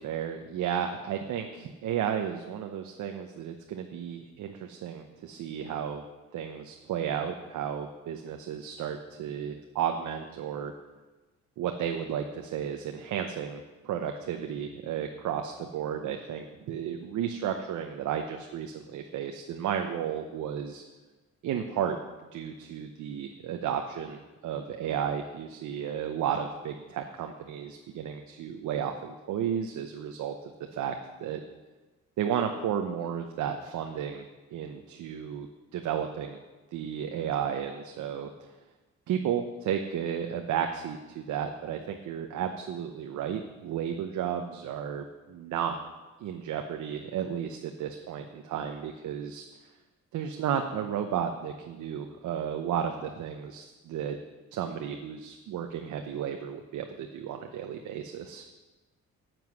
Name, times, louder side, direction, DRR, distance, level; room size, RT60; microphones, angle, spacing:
voice 1, 0.0-6.0 6.3-10.7 11.6-20.8 21.4-22.0 22.3-31.4 32.2-34.2 34.5-36.4 36.7-38.3 39.1-45.8 46.2-49.4 50.1-54.2 54.5-58.4, right 8 dB, 75° right, 5 dB, 0.8 m, -33 dB
9.3 x 7.9 x 6.1 m, 1.2 s
cardioid pair, 90°, 30 cm